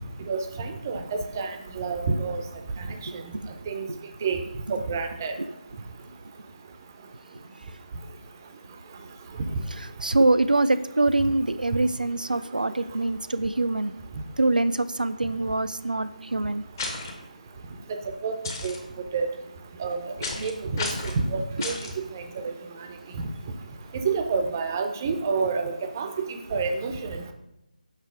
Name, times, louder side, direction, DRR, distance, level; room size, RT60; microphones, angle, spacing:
voice 1, 0.3-2.4 3.7-3.9 4.2-4.4 4.7-5.3 18.2-18.3 18.6-18.7 19.1-19.3 19.8-20.1 20.4-20.9 21.3-21.8 22.1-22.5 23.9-27.2, right 4 dB, 20° right, 0.5 m, -28 dB
voice 2, 10.0-13.9 14.4-16.6, right 2 dB, 80° right, 0.4 m, -24 dB
sound 1, 16.8-17.1 18.4-18.8 20.2-20.5 20.8-21.2 21.6-21.9, left 3 dB, 25° left, 0.8 m, -32 dB
5.8 x 5.6 x 3.7 m
figure-of-eight pair, 155°, 5 cm